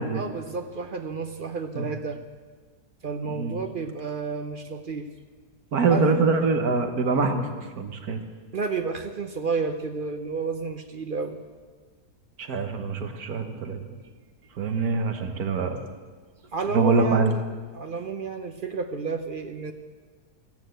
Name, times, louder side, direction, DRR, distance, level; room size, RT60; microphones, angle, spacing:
voice 1, 0.1-2.2 3.0-5.1 5.9-6.2 8.5-11.4 16.5-17.4 17.7-19.7, right 4 dB, 45° right, 7 dB, 0.7 m, -31 dB
voice 2, 5.7-8.2 12.4-13.8 14.6-15.8 16.7-17.3, right 4 dB, 65° right, 6 dB, 1.7 m, -24 dB
14.0 x 11.0 x 7.9 m, 1.5 s
omnidirectional pair, 1.7 m